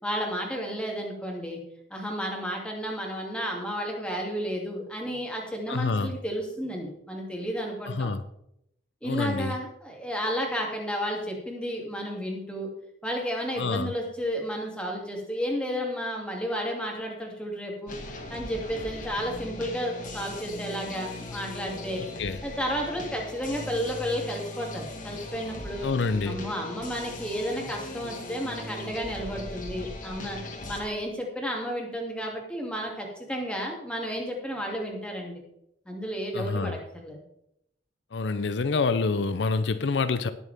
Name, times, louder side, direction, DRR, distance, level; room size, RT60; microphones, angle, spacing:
voice 1, 0.0-1.6 1.9-8.1 9.0-12.7 13.0-18.0 18.3-22.0 22.4-25.9 26.2-30.4 30.6-35.4 35.9-37.2, equal, 5° left, 2.5 m, -32 dB
voice 2, 5.7-6.1 7.9-8.2 9.0-9.5 13.6-13.9 22.0-22.4 25.8-26.4 36.3-36.8 38.1-40.3, left 4 dB, 80° left, 0.6 m, -27 dB
sound 1, 17.9-30.8, left 2 dB, 50° left, 1.9 m, -39 dB
19.5 x 6.9 x 3.5 m
head